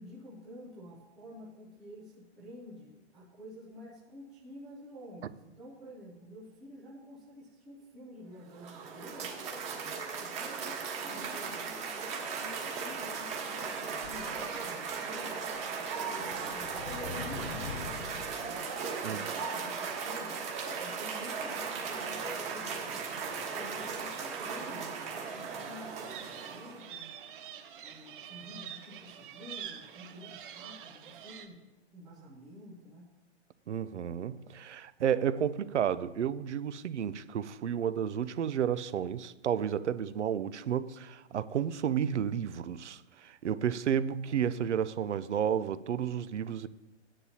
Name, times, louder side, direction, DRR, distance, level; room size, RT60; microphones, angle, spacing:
voice 1, 0.0-9.3 10.2-15.4 16.0-20.3 20.8-26.2 26.5-27.1 27.8-31.6 31.9-33.1, equal, ahead, 0.3 m, -49 dB
Cheering / Applause, 8.4-27.0, right 5 dB, 20° right, 1.3 m, -37 dB
sound 1, 13.6-31.5, right 9 dB, 45° right, 1.0 m, -51 dB
sound 2, 14.0-15.0 15.6-15.7 16.2-18.7, left 7 dB, 70° left, 0.6 m, -44 dB
voice 2, 19.0-19.4 33.7-46.7, right 8 dB, 80° right, 0.7 m, -32 dB
15.0 x 9.9 x 2.8 m
hypercardioid pair, 145°, 35 cm